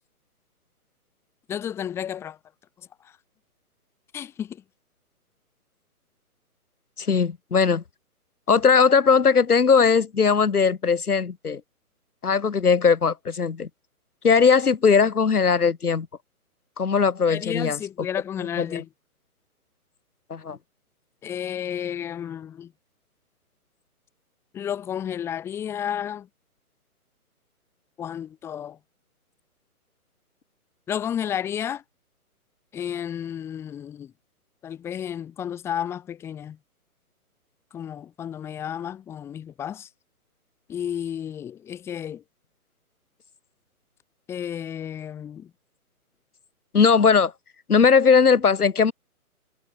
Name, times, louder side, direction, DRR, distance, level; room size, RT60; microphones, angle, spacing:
voice 1, 1.5-2.4 3.0-3.1 4.1-4.6 17.3-18.9 21.2-22.7 24.5-26.3 28.0-28.8 30.9-31.8 32.7-34.1 34.6-36.6 37.7-39.9 40.7-42.2 44.3-45.5, left 9 dB, 5° left, 2.4 m, -32 dB
voice 2, 7.0-7.8 8.5-11.6 12.2-13.7 14.2-16.1 16.8-17.8 18.6-18.8 20.3-20.6 46.7-47.3 47.7-48.9, left 5 dB, 80° left, 3.4 m, -19 dB
hypercardioid pair, 170°, 44 cm